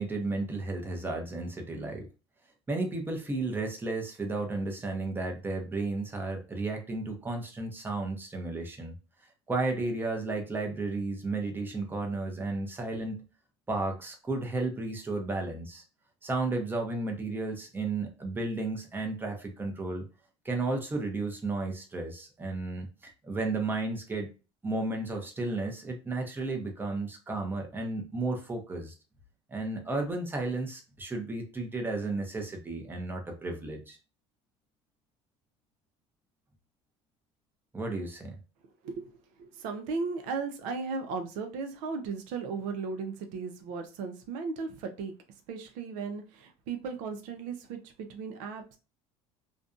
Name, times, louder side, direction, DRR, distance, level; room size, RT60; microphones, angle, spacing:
voice 1, 0.0-2.1 2.7-8.9 9.5-13.2 13.7-15.8 16.2-20.1 20.4-24.3 24.6-28.9 29.5-34.0 37.7-38.4, right 2 dB, 15° right, 2 dB, 0.7 m, -33 dB
voice 2, 38.8-45.1 45.5-48.8, right 4 dB, 75° right, 6 dB, 0.6 m, -36 dB
2.5 x 2.2 x 2.4 m, 0.32 s
supercardioid pair, 105°, 13 cm